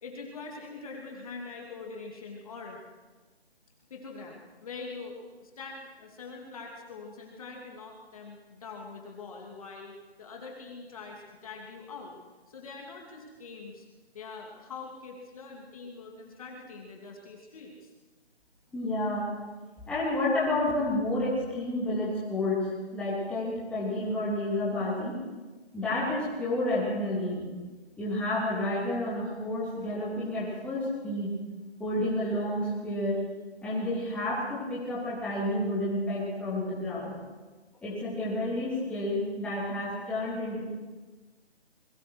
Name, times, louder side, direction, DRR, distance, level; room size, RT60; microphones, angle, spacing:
voice 1, 0.0-2.8 3.9-12.2 12.5-13.9 14.1-17.9 29.8-29.9 33.7-33.9, left 4 dB, 35° left, 0 dB, 2.8 m, -43 dB
voice 2, 18.7-19.3 19.9-25.2 25.7-27.4 28.0-31.3 31.8-33.2 33.6-37.2 37.8-40.6, left 1 dB, 5° left, -8 dB, 3.2 m, -30 dB
27.5 x 22.0 x 4.7 m, 1.3 s
hypercardioid pair, 165°, 33 cm